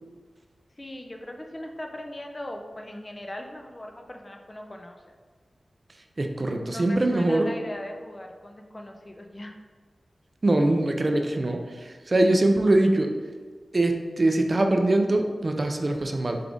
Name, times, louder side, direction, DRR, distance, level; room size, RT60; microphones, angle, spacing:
voice 1, 0.8-5.2 6.6-9.6, left 1 dB, 35° left, 3 dB, 0.4 m, -39 dB
voice 2, 6.2-7.5 10.4-13.1 13.7-16.4, right 2 dB, 45° right, 4 dB, 0.4 m, -23 dB
4.6 x 3.4 x 2.5 m, 1.5 s
wide cardioid pair, 60°, 0 cm